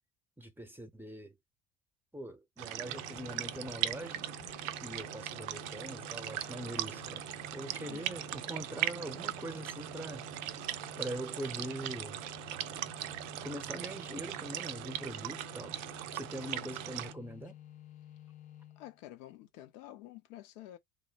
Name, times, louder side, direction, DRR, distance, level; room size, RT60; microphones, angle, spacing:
voice 1, 0.4-1.3 2.1-4.3 4.8-7.3 7.5-10.3 11.0-12.2 13.4-15.8 16.1-17.6, right 1 dB, 5° right, 0.9 m, -42 dB
sound 1, 2.6-17.1, right 13 dB, 60° right, 0.5 m, -39 dB
sound 2, 2.9-19.0, left 12 dB, 20° left, 0.5 m, -52 dB
voice 2, 16.3-16.8 18.8-20.8, left 14 dB, 65° left, 0.8 m, -50 dB
3.2 x 2.1 x 4.1 m
figure-of-eight pair, 65°, 41 cm